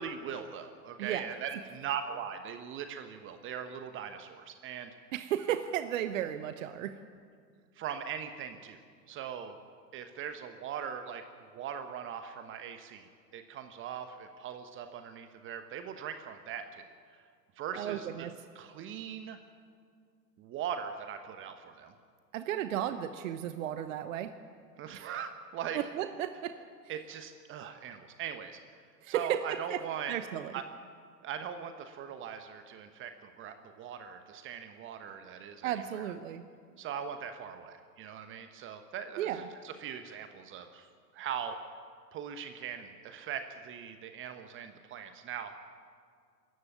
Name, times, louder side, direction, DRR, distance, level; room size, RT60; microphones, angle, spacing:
voice 1, 0.0-4.9 7.7-8.8 9.1-9.6 9.9-16.9 17.6-18.3 18.5-19.4 20.4-21.9 24.8-25.8 26.9-28.6 29.1-30.1 30.5-30.6 31.2-36.1 36.8-40.9 41.1-41.6 42.1-45.5, right 8 dB, 25° right, 8 dB, 1.1 m, -40 dB
voice 2, 5.1-6.9 17.7-18.3 22.3-24.3 24.9-25.1 25.7-26.5 29.0-29.8 30.1-30.5 35.6-36.4 39.2-39.5, right 11 dB, 50° right, 10 dB, 1.1 m, -34 dB
24.5 x 14.5 x 9.5 m, 2.1 s
figure-of-eight pair, 100°, 50 cm